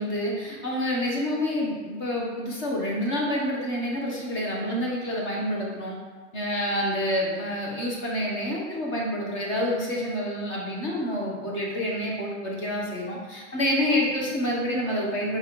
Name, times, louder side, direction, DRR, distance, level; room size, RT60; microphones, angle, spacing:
voice 1, 0.0-6.0 6.3-15.4, equal, 35° left, -2 dB, 1.7 m, -28 dB
5.7 x 4.2 x 4.3 m, 1.4 s
supercardioid pair, 150°, 36 cm